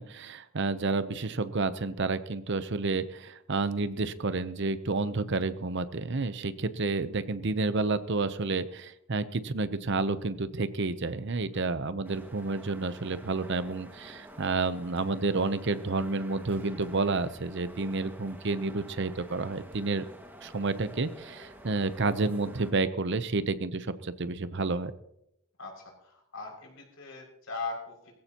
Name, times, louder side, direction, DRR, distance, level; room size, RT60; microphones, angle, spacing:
voice 1, 0.0-20.0 20.4-24.9, right 3 dB, 55° right, 13 dB, 0.8 m, -30 dB
sound 1, 12.0-22.7, equal, 10° right, 1.8 m, -50 dB
voice 2, 25.6-28.1, left 4 dB, 75° left, -1 dB, 6.2 m, -40 dB
21.0 x 15.0 x 3.0 m, 0.80 s
head